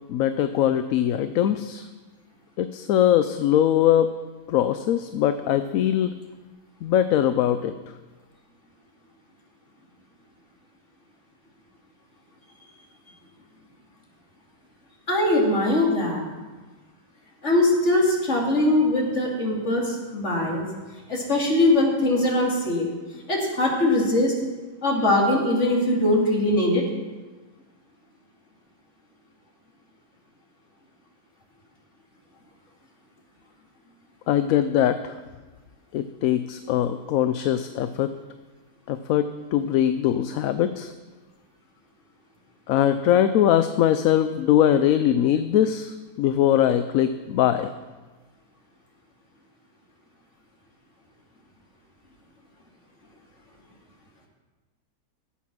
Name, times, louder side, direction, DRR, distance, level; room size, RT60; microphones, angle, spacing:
voice 1, 0.1-1.9 2.6-4.1 4.5-6.1 6.8-7.7 34.3-35.1 35.9-38.1 38.9-40.9 42.7-47.7, left 11 dB, 75° left, 10 dB, 1.0 m, -21 dB
voice 2, 15.1-16.2 17.4-20.6 21.1-22.9 23.3-24.3 24.8-26.8, left 1 dB, 50° left, -2 dB, 2.8 m, -21 dB
15.5 x 8.3 x 6.0 m, 1.3 s
omnidirectional pair, 1.5 m